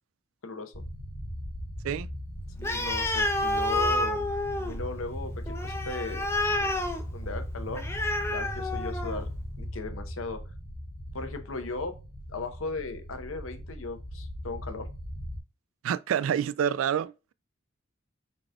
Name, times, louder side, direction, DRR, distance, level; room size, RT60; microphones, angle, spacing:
voice 1, 0.4-0.8 2.6-4.3 4.6-6.7 7.1-7.8 8.3-9.3 9.6-10.4 11.1-12.0 12.3-14.9, left 3 dB, 90° left, 0.8 m, -37 dB
sound 1, 0.7-15.4, equal, 70° left, 1.7 m, -38 dB
Animal, 2.6-9.3, left 1 dB, 15° left, 0.5 m, -30 dB
voice 2, 15.8-17.1, right 8 dB, 80° right, 0.3 m, -27 dB
4.9 x 4.0 x 2.2 m
head